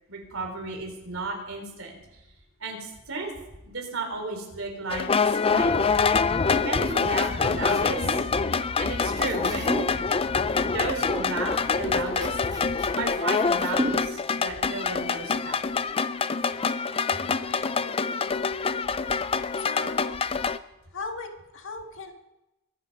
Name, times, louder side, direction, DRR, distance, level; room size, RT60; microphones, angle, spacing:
voice 1, 0.1-2.2 2.6-3.3 3.6-6.0 6.6-8.2 8.8-9.7 10.6-12.4 13.0-15.6, right 3 dB, 65° right, 3 dB, 4.0 m, -34 dB
sound 1, 4.9-20.6, left 5 dB, 25° left, 0.4 m, -25 dB
sound 2, 6.4-14.4, right 1 dB, 15° right, 1.6 m, -37 dB
voice 2, 17.1-18.5 19.6-20.2 20.9-22.1, left 3 dB, 60° left, 4 dB, 1.8 m, -39 dB
23.5 x 9.3 x 5.4 m, 0.93 s
head